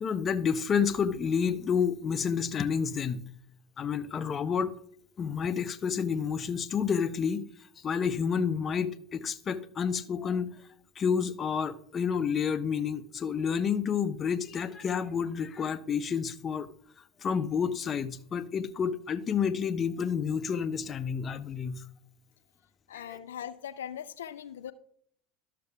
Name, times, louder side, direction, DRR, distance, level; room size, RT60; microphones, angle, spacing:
voice 1, 0.0-3.3 3.8-4.7 5.2-7.5 7.8-10.5 11.0-16.7 17.2-21.8 22.9-23.2, left 6 dB, 35° left, 0.6 m, -29 dB
voice 2, 22.9-24.7, left 9 dB, 85° left, 0.3 m, -40 dB
12.0 x 6.7 x 3.5 m
hypercardioid pair, 80°, 0 cm